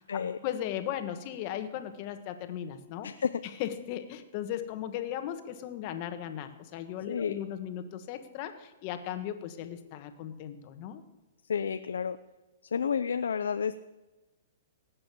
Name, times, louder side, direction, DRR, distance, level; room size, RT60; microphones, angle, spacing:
voice 1, 0.1-3.1 3.4-11.0, left 10 dB, 40° left, 9 dB, 1.6 m, -37 dB
voice 2, 3.0-3.4 7.1-7.4 11.5-12.2 12.6-13.8, left 7 dB, 90° left, 11 dB, 0.6 m, -31 dB
18.5 x 7.7 x 8.6 m, 1.1 s
hypercardioid pair, 145°, 0 cm